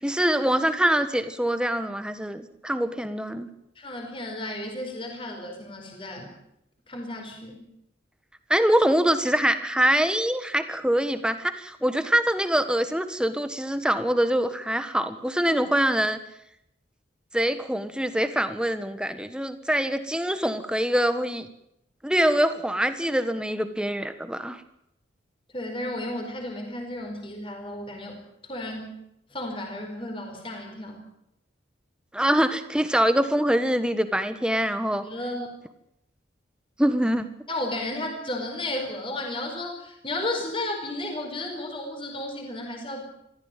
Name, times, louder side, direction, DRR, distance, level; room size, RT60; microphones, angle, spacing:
voice 1, 0.0-3.5 8.5-16.2 17.3-21.5 22.0-24.6 32.1-35.0 36.8-37.3, equal, 5° right, 10 dB, 1.4 m, -24 dB
voice 2, 3.8-6.3 6.9-7.6 25.5-29.0 29.3-31.1 35.0-35.5 37.5-43.0, left 1 dB, 25° left, 3 dB, 4.7 m, -33 dB
23.0 x 15.5 x 9.2 m, 0.80 s
head